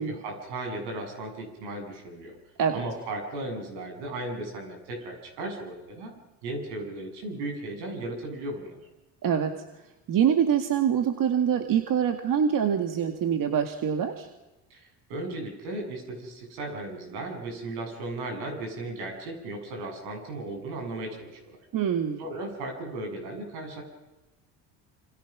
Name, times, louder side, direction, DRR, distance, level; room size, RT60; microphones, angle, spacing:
voice 1, 0.0-2.4 2.7-6.1 6.4-8.8 14.7-21.6 22.2-23.8, right 2 dB, 80° right, 2 dB, 7.8 m, -36 dB
voice 2, 9.2-9.5 10.1-14.3 21.7-22.2, right 8 dB, 55° right, 6 dB, 2.1 m, -25 dB
27.0 x 26.5 x 6.2 m, 1.0 s
supercardioid pair, 85°, 39 cm